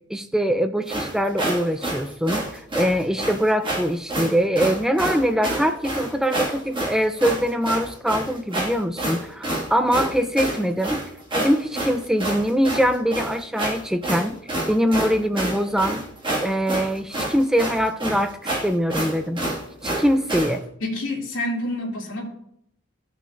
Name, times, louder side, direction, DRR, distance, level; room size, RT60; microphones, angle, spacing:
voice 1, 0.1-11.0 11.3-16.0 16.4-19.4 19.8-20.6, equal, 5° right, 8 dB, 0.3 m, -23 dB
sound 1, 0.9-20.6, right 1 dB, 25° right, 2.0 m, -28 dB
voice 2, 20.8-22.2, left 1 dB, 75° left, -2 dB, 2.8 m, -28 dB
16.5 x 6.1 x 2.6 m, 0.73 s
head